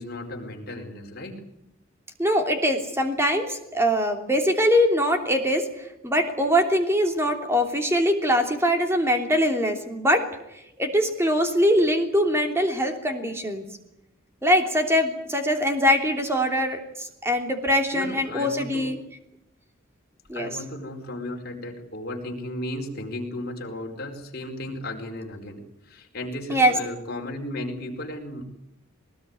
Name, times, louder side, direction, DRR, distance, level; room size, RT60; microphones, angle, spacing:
voice 1, 0.0-1.4 17.9-18.9 20.3-28.5, left 1 dB, 50° left, 1 dB, 4.7 m, -35 dB
voice 2, 2.2-10.2 10.8-13.6 14.4-19.0 20.3-20.5 26.5-26.7, equal, 10° right, 4 dB, 3.1 m, -22 dB
21.0 x 20.0 x 9.6 m, 0.83 s
head